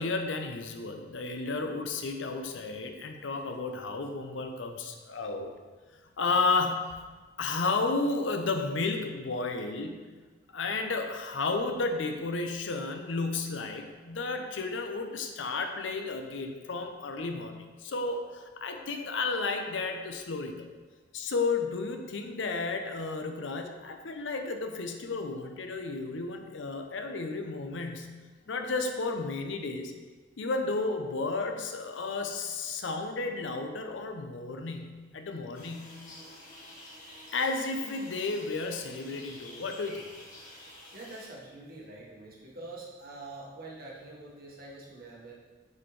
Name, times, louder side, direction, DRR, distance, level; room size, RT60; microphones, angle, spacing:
voice 1, 0.0-5.5 6.2-7.0 7.4-10.1 10.5-20.7 21.1-28.2 28.5-29.9 30.4-36.0 37.3-40.1, left 3 dB, 80° left, 5 dB, 0.6 m, -32 dB
sound 1, 35.5-41.3, left 1 dB, 45° left, 1.3 m, -49 dB
voice 2, 40.9-45.4, right 2 dB, 55° right, -4 dB, 1.3 m, -45 dB
7.2 x 4.3 x 3.2 m, 1.4 s
head